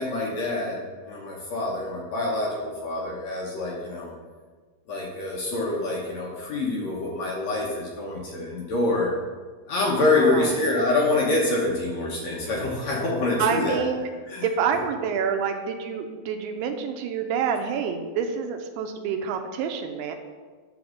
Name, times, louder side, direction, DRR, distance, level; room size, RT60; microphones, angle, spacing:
voice 1, 0.0-4.1 4.9-9.1 9.7-13.9 14.3-14.4, left 2 dB, 85° left, -3 dB, 1.5 m, -26 dB
voice 2, 10.2-10.5 13.4-14.1 14.4-20.2, right 6 dB, 80° right, 5 dB, 2.6 m, -27 dB
10.5 x 3.6 x 6.2 m, 1.5 s
omnidirectional pair, 4.8 m